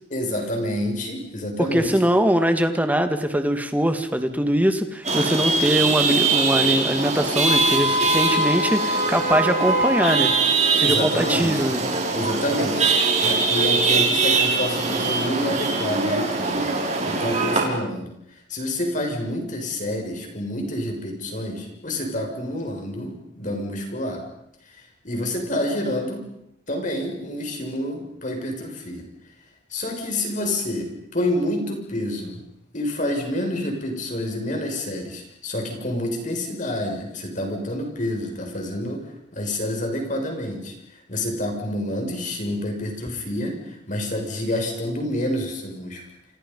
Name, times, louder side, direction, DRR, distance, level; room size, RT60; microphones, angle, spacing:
voice 1, 0.1-2.1 10.7-11.6 12.1-12.9 13.2-18.1 18.5-24.2 24.7-26.3 26.7-29.0 29.7-32.4 32.7-46.0, left 1 dB, 40° left, 3 dB, 6.6 m, -28 dB
voice 2, 1.7-10.3 10.8-11.8, equal, 10° right, 7 dB, 2.1 m, -22 dB
Chatter / Vehicle horn car horn honking / Traffic noise roadway noise, 5.1-17.7, right 3 dB, 35° right, 5.5 m, -22 dB
29.0 x 28.0 x 5.5 m, 0.76 s
head